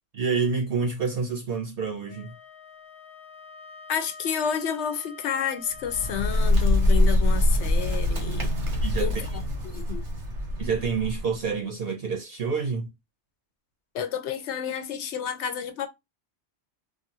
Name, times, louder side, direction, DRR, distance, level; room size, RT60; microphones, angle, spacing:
voice 1, 0.1-2.3 8.8-9.1 10.6-12.9, right 5 dB, 60° right, 0.9 m, -28 dB
Wind instrument woodwind instrument, 2.1-6.6, left 4 dB, 30° left, 0.7 m, -46 dB
voice 2, 3.9-8.5 9.0-9.2 9.6-10.0 13.9-15.9, left 8 dB, 80° left, 1.0 m, -30 dB
Bird, 5.7-11.4, left 1 dB, 90° right, 1.4 m, -24 dB
2.9 x 2.5 x 2.7 m
omnidirectional pair, 1.2 m